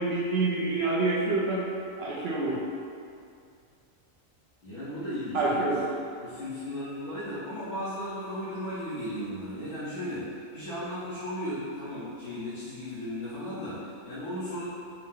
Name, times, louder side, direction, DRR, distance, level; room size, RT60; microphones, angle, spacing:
voice 1, 0.0-1.7 2.0-2.6 5.3-5.8, right 2 dB, 65° right, -5 dB, 0.6 m, -27 dB
voice 2, 4.6-5.7 6.2-14.6, equal, 65° left, -14 dB, 1.4 m, -36 dB
4.5 x 2.1 x 3.8 m, 2.4 s
omnidirectional pair, 1.5 m